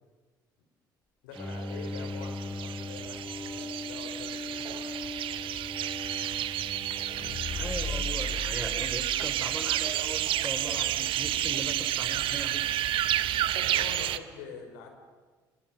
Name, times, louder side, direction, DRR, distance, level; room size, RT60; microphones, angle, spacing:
voice 1, 1.2-5.1 11.9-12.3 13.6-14.9, left 5 dB, 65° left, 5 dB, 4.8 m, -45 dB
Bowed string instrument, 1.4-8.6, left 2 dB, 5° left, 1.6 m, -40 dB
sound 1, 1.4-14.2, right 12 dB, 50° right, 1.2 m, -31 dB
sound 2, 6.9-9.8 10.1-10.2, left 5 dB, 40° left, 1.7 m, -37 dB
voice 2, 7.5-12.6, right 2 dB, 10° right, 8 dB, 3.4 m, -39 dB
29.0 x 28.5 x 7.0 m, 1.4 s
figure-of-eight pair, 55°, 11 cm